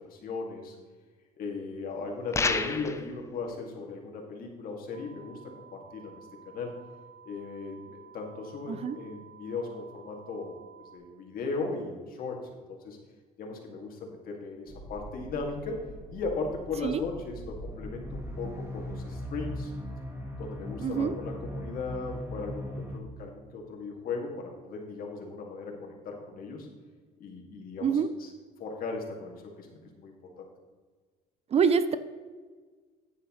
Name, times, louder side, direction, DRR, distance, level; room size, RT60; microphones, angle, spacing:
voice 1, 0.1-0.8 1.4-5.4 5.7-6.7 7.2-12.4 12.7-13.0 13.4-15.7 16.1-19.7 20.4-26.7 27.2-28.3 28.6-30.5, left 4 dB, 60° left, 1 dB, 2.3 m, -37 dB
sound 1, 2.3-3.1, left 3 dB, 15° left, 0.5 m, -28 dB
sound 2, 4.9-11.0, right 7 dB, 55° right, 1.6 m, -53 dB
sound 3, 14.7-23.0, equal, 15° right, 1.5 m, -40 dB
voice 2, 20.8-21.1 27.8-28.1 31.5-32.0, right 6 dB, 40° right, 13 dB, 0.5 m, -25 dB
9.8 x 9.5 x 3.2 m, 1.5 s
cardioid pair, 110°, 17 cm